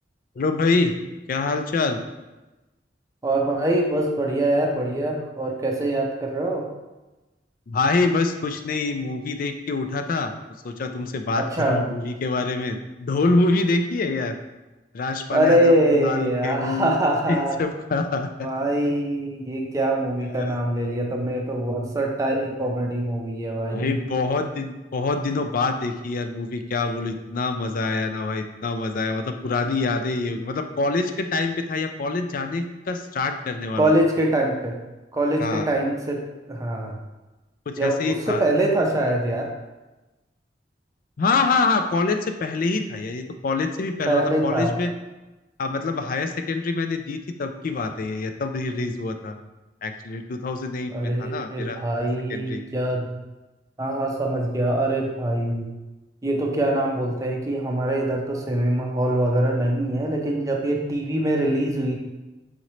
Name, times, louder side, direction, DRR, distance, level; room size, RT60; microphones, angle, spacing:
voice 1, 0.4-0.9 1.3-2.0 7.7-10.3 10.6-14.4 14.9-17.0 17.3-18.3 20.3-20.5 23.7-33.9 35.4-35.7 37.8-38.4 41.2-44.9 45.6-49.4 49.8-52.6, left 3 dB, 50° left, 7 dB, 0.4 m, -25 dB
voice 2, 3.2-6.7 11.4-11.8 15.3-17.6 18.4-24.0 33.8-34.8 35.1-36.2 36.5-37.0 37.8-39.5 44.1-44.7 50.9-53.1 53.8-55.7 56.2-62.0, right 1 dB, 20° right, 0 dB, 0.5 m, -23 dB
4.1 x 3.8 x 3.1 m, 1.1 s
head